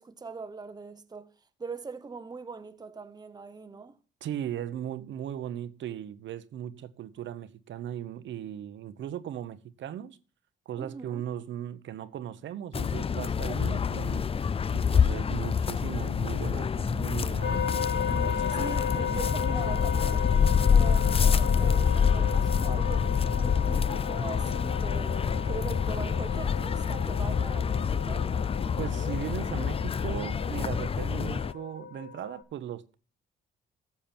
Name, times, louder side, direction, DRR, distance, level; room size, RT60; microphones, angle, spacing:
voice 1, 0.0-1.3 1.6-4.0 10.8-11.2 18.1-28.3, right 4 dB, 20° right, 0.9 m, -42 dB
voice 2, 4.2-10.2 10.7-14.3 14.7-17.7 18.2-18.8 28.8-33.0, right 10 dB, 70° right, 1.0 m, -38 dB
sound 1, 12.7-31.5, left 7 dB, 30° left, 0.5 m, -27 dB
sound 2, 17.4-32.4, left 7 dB, 45° left, 3.6 m, -36 dB
14.5 x 7.3 x 4.4 m
cardioid pair, 90°, 20 cm